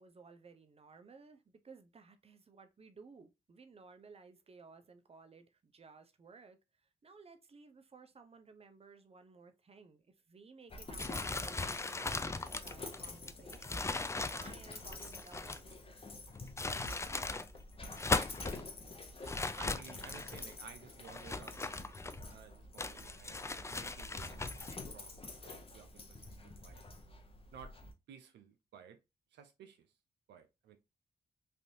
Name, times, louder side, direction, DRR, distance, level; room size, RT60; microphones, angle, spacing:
voice 1, 0.0-6.6 7.0-13.9 14.3-15.7, right 4 dB, 35° right, 0.7 m, -57 dB
Dog, 10.7-27.9, left 2 dB, 35° left, 0.8 m, -49 dB
sound 1, 11.0-15.7 16.3-17.5 17.8-18.6 19.2-20.4 21.0-22.3 22.8-24.8, left 3 dB, 15° left, 0.4 m, -38 dB
voice 2, 19.6-21.9 22.3-26.8 27.5-27.8 28.1-29.0 29.3-29.9 30.3-30.8, right 7 dB, 85° right, 0.5 m, -55 dB
3.3 x 2.6 x 2.7 m
supercardioid pair, 50°, 18 cm